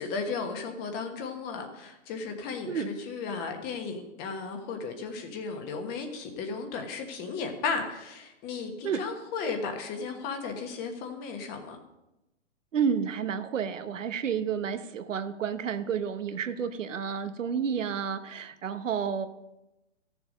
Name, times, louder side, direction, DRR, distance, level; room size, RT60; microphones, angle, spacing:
voice 1, 0.0-11.8, left 4 dB, 25° left, 5 dB, 1.3 m, -35 dB
voice 2, 12.7-19.3, right 7 dB, 85° right, 10 dB, 1.1 m, -30 dB
14.0 x 7.0 x 5.2 m, 0.94 s
hypercardioid pair, 145°, 37 cm